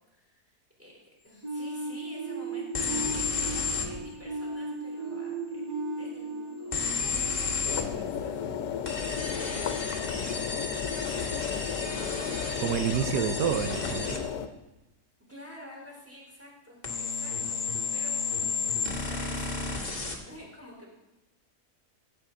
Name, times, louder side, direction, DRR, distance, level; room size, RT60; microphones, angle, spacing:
voice 1, 0.1-0.9 1.2-5.6 6.0-8.4 9.2-12.0 15.3-16.8 17.1-17.6 17.9-19.8 20.2-20.9, left 1 dB, 10° right, -2 dB, 3.3 m, -49 dB
sound 1, 1.4-8.2, right 2 dB, 65° right, 3.7 m, -36 dB
sound 2, 2.7-3.9 6.7-7.9 8.9-14.2 16.8-20.2, left 4 dB, 30° left, 1.3 m, -32 dB
sound 3, 7.7-14.5, left 8 dB, 80° left, 1.2 m, -34 dB
voice 2, 12.6-14.2, right 9 dB, 90° right, 10 dB, 1.2 m, -28 dB
14.0 x 8.0 x 3.7 m, 1.0 s
omnidirectional pair, 1.7 m